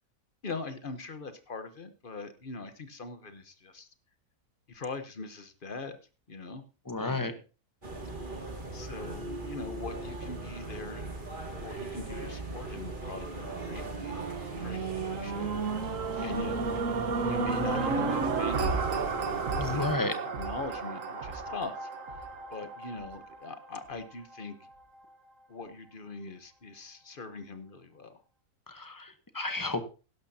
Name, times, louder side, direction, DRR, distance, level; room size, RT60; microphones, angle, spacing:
voice 1, 0.4-3.9 4.7-6.0 6.3-6.6 6.9-7.4 8.7-11.0 11.6-14.2 14.6-16.6 17.2-20.0 20.4-21.9 22.2-24.6 25.5-28.1, left 3 dB, 40° left, 10 dB, 1.0 m, -41 dB
voice 2, 6.9-7.3 19.6-20.1 28.7-29.8, left 2 dB, 15° left, 9 dB, 0.9 m, -32 dB
sound 1, 7.8-20.0, right 2 dB, 35° right, 2.3 m, -39 dB
sound 2, 13.5-23.7 24.3-24.4, right 4 dB, 60° right, 1.4 m, -33 dB
16.5 x 12.0 x 2.8 m, 0.33 s
omnidirectional pair, 1.6 m